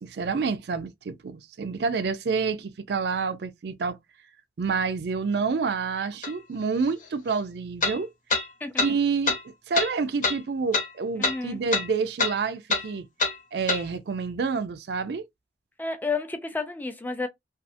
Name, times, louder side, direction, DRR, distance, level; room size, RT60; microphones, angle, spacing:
voice 1, 0.0-4.0 4.6-8.1 8.8-13.0 13.5-15.2, right 5 dB, 65° right, 0.4 m, -28 dB
sound 1, 6.2-6.3 7.8-8.0 8.3-8.4 8.8-8.9 9.3-9.4 9.7-9.9 10.2-10.4 10.7-10.9 11.2-11.4 11.7-11.9 12.2-12.3 12.7-12.8 13.2-13.3 13.7-13.8, left 3 dB, 45° left, 0.8 m, -24 dB
voice 2, 11.2-11.6 15.8-17.3, left 3 dB, 10° left, 0.4 m, -31 dB
2.6 x 2.4 x 2.4 m
head